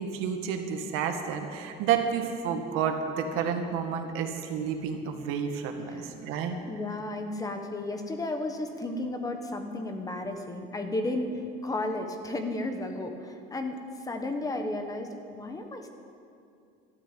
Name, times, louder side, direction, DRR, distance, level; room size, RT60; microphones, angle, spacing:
voice 1, 0.0-6.6, right 7 dB, 80° right, 4 dB, 1.9 m, -30 dB
voice 2, 6.7-13.8 14.0-15.9, left 2 dB, 15° left, 6 dB, 1.2 m, -33 dB
13.0 x 12.0 x 9.0 m, 2.5 s
cardioid pair, 155°, 21 cm